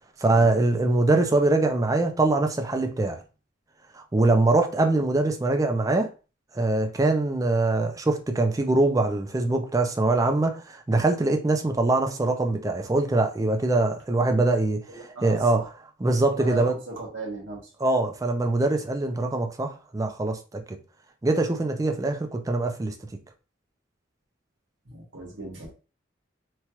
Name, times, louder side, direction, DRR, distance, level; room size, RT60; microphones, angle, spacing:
voice 1, 0.2-3.2 3.9-6.1 6.5-15.6 16.0-16.8 17.8-20.8 21.2-23.0, right 2 dB, 15° right, 0.4 m, -23 dB
voice 2, 14.9-15.7 16.3-17.7 24.8-25.7, right 3 dB, 70° right, 1.2 m, -37 dB
3.0 x 2.3 x 2.9 m
head